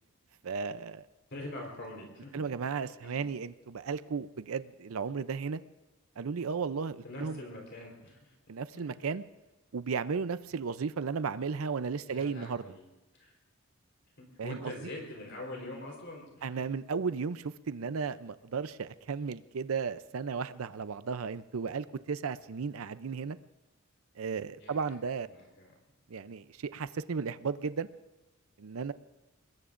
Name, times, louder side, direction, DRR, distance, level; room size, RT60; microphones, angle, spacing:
voice 1, 0.4-1.0 2.3-5.6 6.2-7.4 8.5-9.2 9.7-12.6 14.4-14.7 16.4-23.4 24.2-25.3 26.1-27.9 28.6-28.9, right 5 dB, 80° right, 14 dB, 0.5 m, -34 dB
voice 2, 1.3-2.5 3.0-3.3 7.0-8.3 8.7-9.0 12.1-12.9 13.1-13.3 14.2-16.7 24.6-25.0 25.3-25.7, left 1 dB, 55° left, 0 dB, 4.0 m, -44 dB
26.5 x 21.0 x 2.6 m, 1.1 s
head